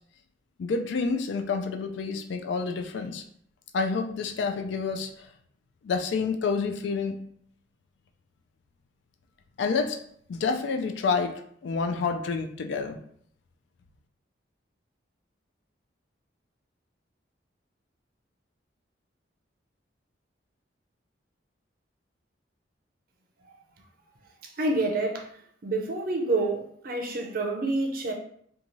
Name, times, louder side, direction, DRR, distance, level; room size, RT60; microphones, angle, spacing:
voice 1, 0.6-3.2 3.7-5.3 5.8-7.2 9.6-10.0 10.3-13.0, left 4 dB, 70° left, 0.3 m, -28 dB
voice 2, 24.4-25.3 25.6-28.1, right 2 dB, 50° right, 0.5 m, -28 dB
2.6 x 2.3 x 3.0 m
head